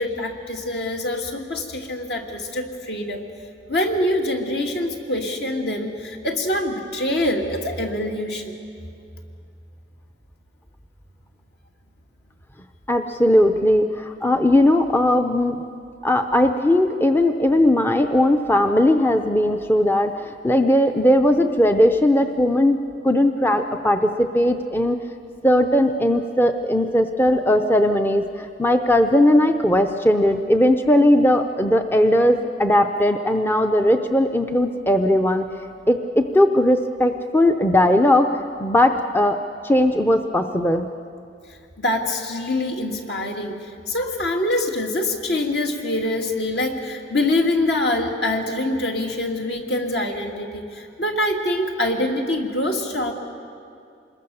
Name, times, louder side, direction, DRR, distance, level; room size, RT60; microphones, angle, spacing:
voice 1, 0.0-3.2 3.7-8.4 41.8-43.6 43.9-53.1, left 1 dB, 65° left, 2 dB, 2.5 m, -24 dB
voice 2, 12.9-15.6 16.0-22.8 23.0-25.0 25.4-35.5 35.9-39.4 39.6-40.9, left 1 dB, 10° left, 6 dB, 0.6 m, -18 dB
26.5 x 21.0 x 7.1 m, 2.4 s
head